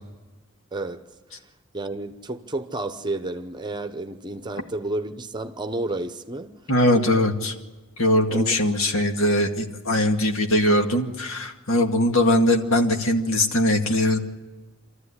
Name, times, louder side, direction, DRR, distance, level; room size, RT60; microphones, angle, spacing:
voice 1, 0.7-1.0 1.7-6.5 8.3-8.5, right 2 dB, 20° right, 0.9 m, -31 dB
voice 2, 6.7-7.5 8.0-14.2, left 1 dB, 80° left, 2.2 m, -21 dB
26.5 x 14.0 x 9.9 m
head